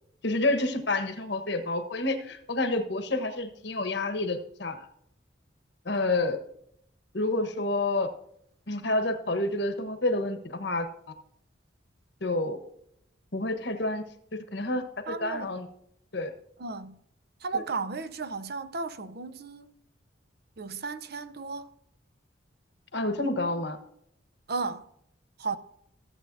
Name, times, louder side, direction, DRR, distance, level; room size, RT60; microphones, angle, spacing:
voice 1, 0.2-4.8 5.8-6.4 7.1-8.1 8.7-10.9 12.2-12.6 13.3-14.0 14.3-15.7 16.1-16.3 22.9-23.8, left 2 dB, 65° left, 1.2 m, -29 dB
voice 2, 15.1-15.5 16.6-17.0 17.4-19.7 20.6-21.7 24.5-24.9 25.4-25.6, right 4 dB, 55° right, 0.7 m, -34 dB
14.5 x 7.8 x 2.7 m
head